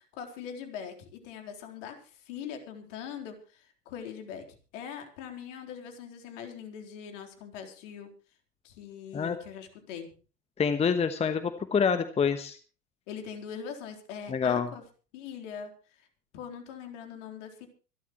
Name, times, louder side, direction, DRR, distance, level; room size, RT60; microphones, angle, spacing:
voice 1, 0.0-4.4 4.7-8.1 8.6-10.1 13.1-14.8 15.1-16.1 16.3-17.7, left 7 dB, 50° left, 5 dB, 4.0 m, -42 dB
voice 2, 10.6-12.6 14.3-14.7, left 6 dB, 15° left, 10 dB, 1.1 m, -26 dB
25.0 x 12.5 x 3.2 m, 0.37 s
figure-of-eight pair, 90°, 46 cm